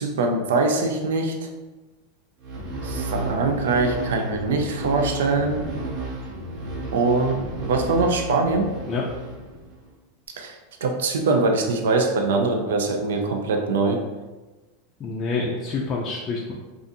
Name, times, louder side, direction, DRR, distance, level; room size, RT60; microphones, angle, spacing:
voice 1, 0.0-1.4 2.8-5.7 6.9-7.4 7.7-8.7 10.4-14.0, right 3 dB, 85° right, 3 dB, 0.4 m, -23 dB
sound 1, 2.4-9.9, right 1 dB, 50° right, 0.7 m, -32 dB
voice 2, 15.0-16.5, left 4 dB, 30° left, -3 dB, 0.4 m, -27 dB
2.5 x 2.4 x 2.5 m, 1.2 s
hypercardioid pair, 115°, 0 cm